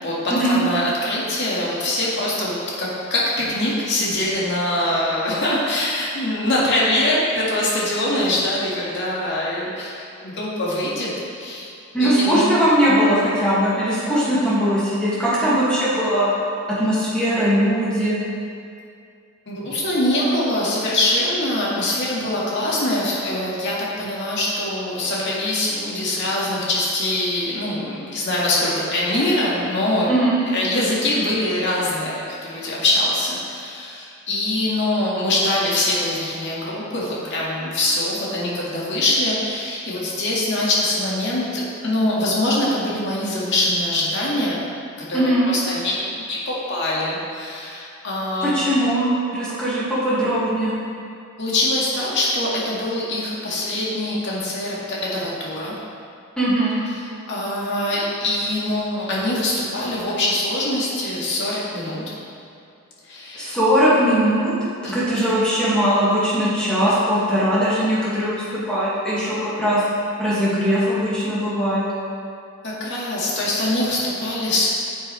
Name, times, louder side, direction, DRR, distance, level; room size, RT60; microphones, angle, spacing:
voice 1, 0.0-11.7 12.0-12.4 19.5-44.6 45.1-46.0 46.3-48.5 51.4-55.7 57.3-62.0 63.0-63.5 64.8-65.3 72.6-74.6, left 1 dB, 55° left, -6 dB, 2.1 m, -23 dB
voice 2, 11.9-16.3 16.7-18.2 30.1-30.4 45.1-45.5 48.4-50.7 56.4-56.8 63.4-64.5 64.9-69.8 70.2-71.9, equal, 5° left, -11 dB, 2.3 m, -20 dB
9.6 x 7.6 x 3.4 m, 2.4 s
head